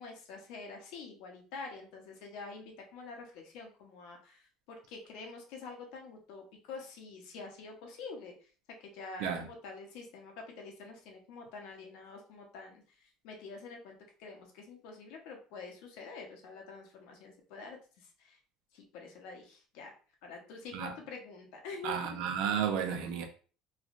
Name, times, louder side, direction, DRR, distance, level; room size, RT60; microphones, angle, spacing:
voice 1, 0.0-8.5 8.8-18.4 18.7-19.9 20.2-22.3, left 4 dB, 75° left, 0.8 m, -47 dB
voice 2, 21.8-23.3, right 8 dB, 70° right, 0.6 m, -32 dB
3.2 x 2.3 x 2.5 m
cardioid pair, 155°, 0 cm